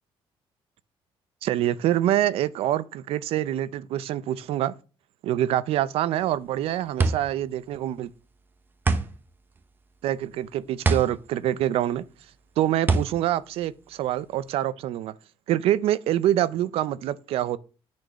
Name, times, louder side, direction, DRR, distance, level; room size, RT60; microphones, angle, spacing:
voice 1, 1.4-4.7 5.2-8.1 10.0-12.1 12.6-15.1 15.5-17.6, right 12 dB, 80° right, 0.6 m, -25 dB
sound 1, 6.2-14.5, right 4 dB, 20° right, 0.8 m, -28 dB
9.4 x 4.4 x 6.1 m
cardioid pair, 175°, 10 cm